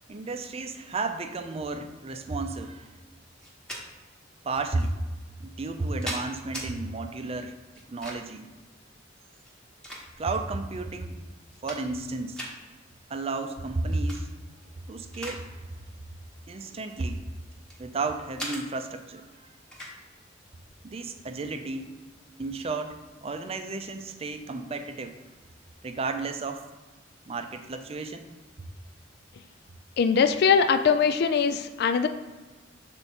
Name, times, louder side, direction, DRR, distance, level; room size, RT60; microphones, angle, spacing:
voice 1, 0.1-2.9 4.4-5.0 5.4-7.5 7.9-8.5 10.2-11.2 11.6-12.4 13.1-14.3 14.9-15.5 16.5-17.2 17.8-19.5 20.8-21.9 22.4-25.2 25.8-26.6 27.3-28.3, right 3 dB, 30° right, 7 dB, 0.5 m, -32 dB
sound 1, 3.4-3.8 4.8-4.9 5.6-6.7 7.7-8.4 9.4-10.4 11.0-11.1 11.4-12.1 12.3-12.5 13.9-14.2 14.6-15.4 15.7-16.0 16.7-17.8 18.4-18.6 19.7-20.0, equal, 5° left, 1.1 m, -38 dB
voice 2, 30.0-32.1, left 6 dB, 55° left, 10 dB, 0.3 m, -22 dB
6.6 x 3.5 x 4.3 m, 1.2 s
head